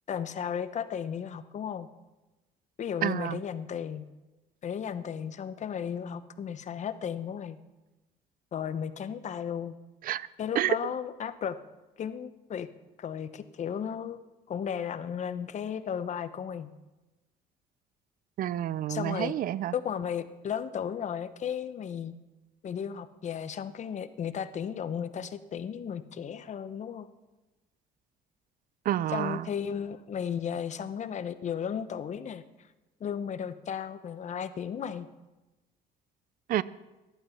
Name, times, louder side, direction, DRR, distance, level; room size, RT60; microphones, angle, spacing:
voice 1, 0.1-1.9 2.8-4.1 4.6-7.6 8.5-9.8 10.4-11.6 12.0-12.7 13.0-14.2 14.5-16.7 18.9-19.3 19.7-22.1 22.6-27.1 29.1-32.7 33.0-35.1, left 8 dB, 45° left, 0.9 m, -34 dB
voice 2, 3.0-3.4 10.0-10.3 10.6-10.7 18.4-19.7 28.9-29.4 36.5-36.6, right 12 dB, 55° right, 0.5 m, -29 dB
14.5 x 11.5 x 5.8 m
cardioid pair, 110°, 17 cm